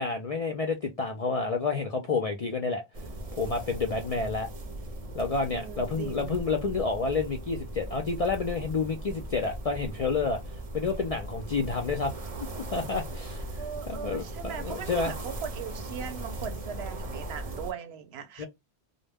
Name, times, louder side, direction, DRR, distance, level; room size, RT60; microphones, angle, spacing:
voice 1, 0.0-2.8 3.3-4.5 5.1-12.1 12.5-13.4 13.9-15.1 18.4-18.5, left 4 dB, 55° left, 0.4 m, -29 dB
sound 1, 2.9-17.7, right 1 dB, 45° right, 0.6 m, -38 dB
voice 2, 5.5-6.4 13.5-18.5, right 7 dB, 75° right, 0.8 m, -39 dB
2.1 x 2.1 x 3.3 m
omnidirectional pair, 1.1 m